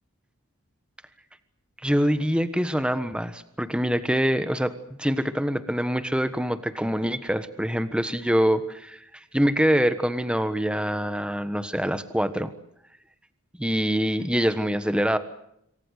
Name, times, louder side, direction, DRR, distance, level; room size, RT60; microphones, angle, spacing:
voice 1, 1.8-4.7 5.0-9.0 9.3-12.5 13.6-15.2, equal, 5° right, 11 dB, 1.3 m, -24 dB
27.0 x 23.5 x 6.5 m, 0.77 s
head